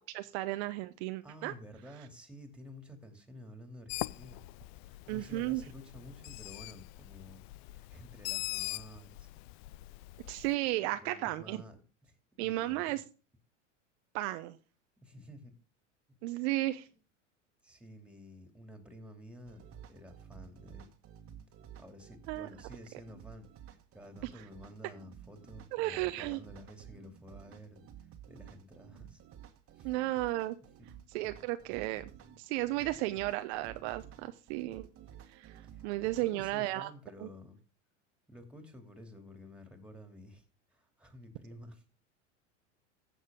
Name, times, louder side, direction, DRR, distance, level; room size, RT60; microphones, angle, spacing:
voice 1, 0.1-1.5 5.1-5.6 10.3-11.6 12.4-13.0 14.1-14.6 16.2-16.9 22.3-22.5 25.7-26.4 29.8-30.6 31.1-32.1 32.4-34.9 35.3-36.9 37.2-37.3, right 17 dB, 60° right, 10 dB, 0.8 m, -34 dB
voice 2, 1.2-4.4 4.8-9.3 11.0-11.8 12.1-12.2 12.4-13.0 15.0-15.5 16.3-16.5 17.6-19.6 19.9-20.9 21.8-29.2 29.7-29.9 30.8-30.9 35.7-37.6 38.3-40.4 40.7-41.8, left 1 dB, 5° right, 5 dB, 2.7 m, -52 dB
Bird, 3.9-10.6, left 20 dB, 55° left, 0.4 m, -42 dB
sound 1, 19.5-36.5, right 9 dB, 35° right, 1.5 m, -53 dB
15.5 x 6.5 x 3.7 m, 0.34 s
hypercardioid pair, 90°, 37 cm